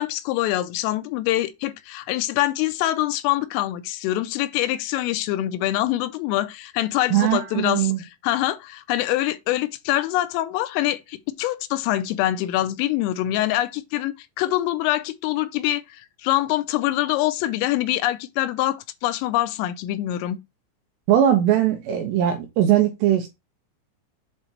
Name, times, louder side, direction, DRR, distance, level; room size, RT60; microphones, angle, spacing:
voice 1, 0.0-7.9 8.2-20.4, left 15 dB, 85° left, 3.3 m, -24 dB
voice 2, 7.1-8.0 21.1-23.3, right 11 dB, 80° right, 2.6 m, -20 dB
7.9 x 3.3 x 4.4 m
omnidirectional pair, 5.9 m